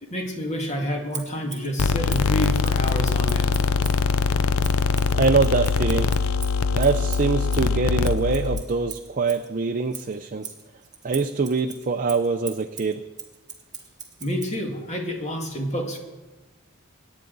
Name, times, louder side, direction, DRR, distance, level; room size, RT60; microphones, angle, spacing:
voice 1, 0.0-3.7 14.2-16.0, equal, 30° left, 1 dB, 2.1 m, -29 dB
Scissors, 1.1-4.1 4.6-9.5 9.9-14.6, right 7 dB, 20° right, 1.9 m, -40 dB
sound 1, 1.8-8.6, left 4 dB, 70° left, 0.5 m, -22 dB
voice 2, 5.1-6.1 6.7-10.5 11.0-13.0, right 4 dB, 40° right, 5 dB, 0.5 m, -24 dB
23.5 x 9.8 x 4.0 m, 1.2 s
head